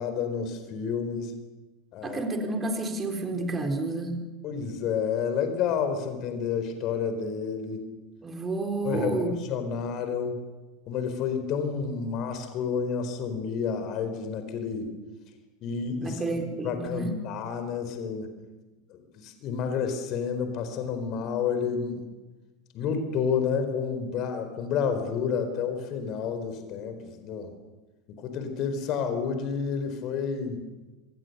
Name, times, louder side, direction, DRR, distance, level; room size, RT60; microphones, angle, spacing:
voice 1, 0.0-1.3 1.9-2.2 4.4-7.8 8.8-10.4 10.9-14.9 15.6-16.2 16.6-18.3 18.9-22.1 22.7-27.5 28.2-30.6, left 6 dB, 45° left, 8 dB, 4.4 m, -30 dB
voice 2, 2.0-4.2 8.2-9.4 16.0-17.1, right 2 dB, 20° right, 4 dB, 4.1 m, -30 dB
26.5 x 26.0 x 6.8 m, 1.2 s
figure-of-eight pair, 80°, 0 cm